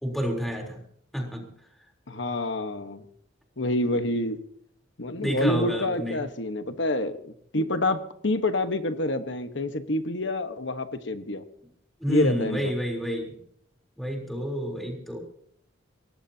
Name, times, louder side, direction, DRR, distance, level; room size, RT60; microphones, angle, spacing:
voice 1, 0.0-0.8 1.1-1.4 5.2-6.2 12.0-13.3 14.0-15.2, equal, ahead, 1 dB, 3.6 m, -29 dB
voice 2, 2.1-3.0 3.6-4.4 5.0-11.4 12.1-12.7, left 1 dB, 65° left, 9 dB, 1.3 m, -27 dB
23.5 x 19.0 x 2.9 m, 0.65 s
head